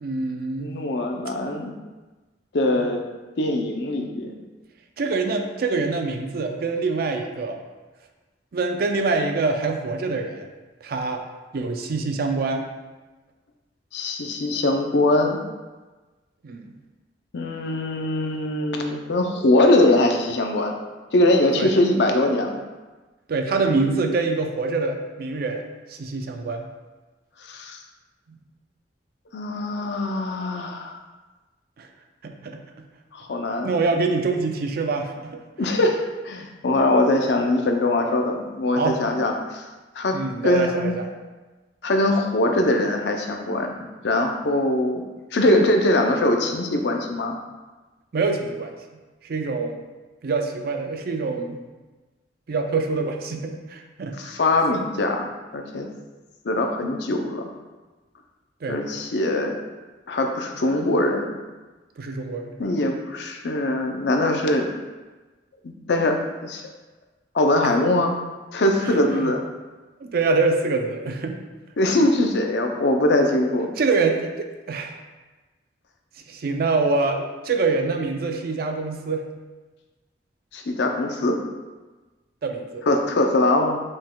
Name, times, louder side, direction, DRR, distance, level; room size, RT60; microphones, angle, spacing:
voice 1, 0.0-0.7 2.7-2.8 5.0-7.6 8.5-10.5 10.8-11.2 11.5-12.7 16.4-16.7 21.5-21.7 23.3-25.6 25.9-26.7 31.8-31.9 32.2-32.9 33.6-35.4 38.8-39.0 40.1-41.1 48.1-48.7 49.2-49.8 50.2-51.6 52.5-54.3 58.6-58.8 62.0-62.6 67.6-67.7 68.8-69.3 70.0-71.4 73.8-75.0 76.3-79.3 82.4-82.8, right 3 dB, 55° right, 4 dB, 0.4 m, -25 dB
voice 2, 0.6-1.7 2.5-3.0 3.4-4.3 13.9-15.4 17.3-20.7 21.1-22.6 27.5-27.8 29.3-31.0 33.1-33.7 35.6-39.6 40.0-40.1 40.4-40.9 41.8-43.7 44.0-45.0 45.3-47.3 54.2-55.3 55.5-55.9 56.4-57.4 58.7-59.6 60.1-61.4 62.6-64.7 65.6-66.2 66.4-66.6 67.3-68.1 68.5-69.4 71.8-73.7 80.5-81.4 82.9-83.8, left 1 dB, 70° left, 3 dB, 0.5 m, -22 dB
5.2 x 3.6 x 2.2 m, 1.2 s
head